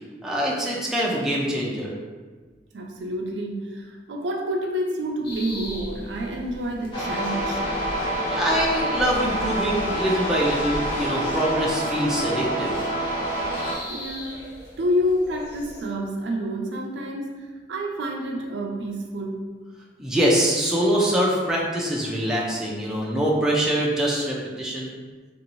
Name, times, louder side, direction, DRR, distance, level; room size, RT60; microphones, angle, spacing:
voice 1, 0.2-1.9 8.2-12.9 20.0-24.9, equal, 5° right, -5 dB, 0.4 m, -24 dB
voice 2, 2.7-7.6 13.9-19.5, equal, 75° right, 1 dB, 0.4 m, -28 dB
sound 1, 5.2-15.8, left 1 dB, 60° left, 0.8 m, -40 dB
sound 2, 6.9-13.7, right 1 dB, 25° left, 0.9 m, -27 dB
3.0 x 2.6 x 3.0 m, 1.4 s
head